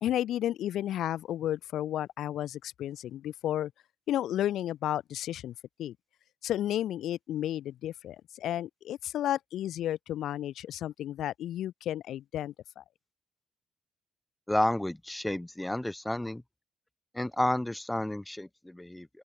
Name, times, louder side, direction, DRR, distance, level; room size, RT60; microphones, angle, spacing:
voice 1, 0.0-3.7 4.1-6.0 6.4-12.8, left 12 dB, 75° left, 0.4 m, -32 dB
voice 2, 14.5-16.4 17.1-19.1, left 1 dB, 10° left, 0.8 m, -31 dB
open air
cardioid pair, 90°, 0 cm